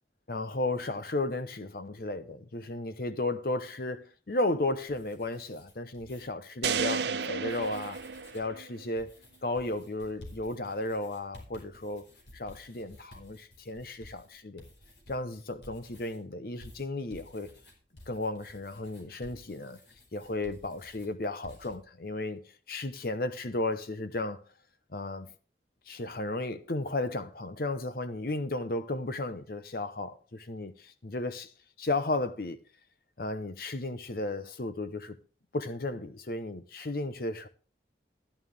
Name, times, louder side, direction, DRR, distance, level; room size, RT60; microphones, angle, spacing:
voice 1, 0.3-8.0 8.3-9.1 9.4-12.1 12.3-14.6 15.1-17.5 18.1-19.8 20.1-22.4 22.7-24.4 24.9-25.3 25.9-31.5 31.8-32.6 33.2-35.2 35.5-37.5, left 2 dB, 55° left, 0.8 m, -34 dB
sound 1, 4.9-6.2 6.7-7.0 7.4-8.5 9.0-16.2 16.6-21.1 21.4-21.8, left 1 dB, 80° left, 4.9 m, -53 dB
sound 2, 6.6-8.9, right 6 dB, 75° right, 0.8 m, -32 dB
13.5 x 11.0 x 3.4 m
head